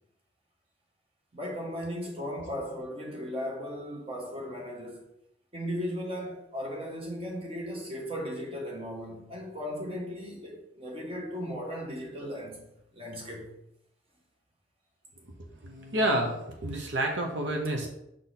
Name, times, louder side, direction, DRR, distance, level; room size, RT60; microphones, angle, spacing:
voice 1, 1.3-5.0 5.5-12.6 12.9-13.5, equal, 30° right, 1.4 m, -36 dB
voice 2, 15.6-17.9, right 1 dB, 80° right, 0.9 m, -29 dB
6.5 x 4.2 x 4.0 m
head